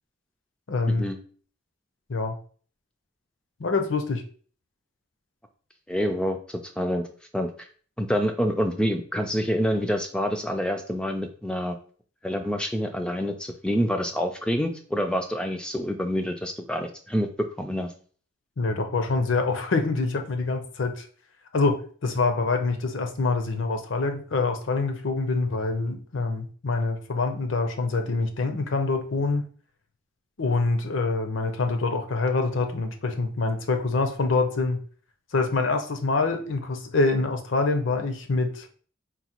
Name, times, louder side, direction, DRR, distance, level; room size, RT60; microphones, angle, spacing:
voice 1, 0.7-1.0 2.1-2.4 3.6-4.2 18.6-21.1 21.5-29.5 30.4-34.8 35.3-38.7, left 3 dB, 70° left, 6 dB, 0.6 m, -25 dB
voice 2, 5.9-7.1 7.3-7.5 8.0-11.8 12.2-17.3 17.6-17.9, equal, 5° left, 5 dB, 0.3 m, -27 dB
3.9 x 2.2 x 4.3 m, 0.43 s
head